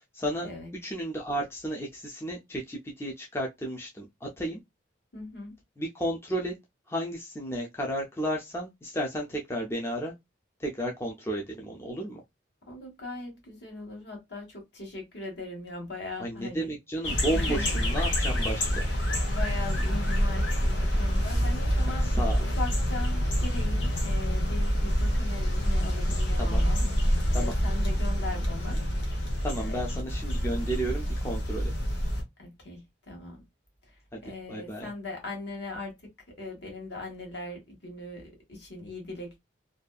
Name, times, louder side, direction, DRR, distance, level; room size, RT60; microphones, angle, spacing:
voice 1, 0.1-0.5 0.8-4.6 5.8-6.5 6.9-10.1 10.6-12.2 16.2-18.8 21.8-22.4 26.4-26.6 27.3-27.5 29.4-31.7 34.1-34.2 34.5-34.9, right 1 dB, 15° left, 0.4 m, -33 dB
voice 2, 5.1-5.5 12.7-16.7 17.3-17.8 19.2-22.1 22.4-26.8 27.3-28.8 29.6-29.8 32.4-33.4 33.9-35.9 36.4-39.4, left 2 dB, 60° left, 1.3 m, -39 dB
sound 1, 17.0-32.2, equal, 80° left, 1.0 m, -27 dB
2.6 x 2.3 x 2.2 m
head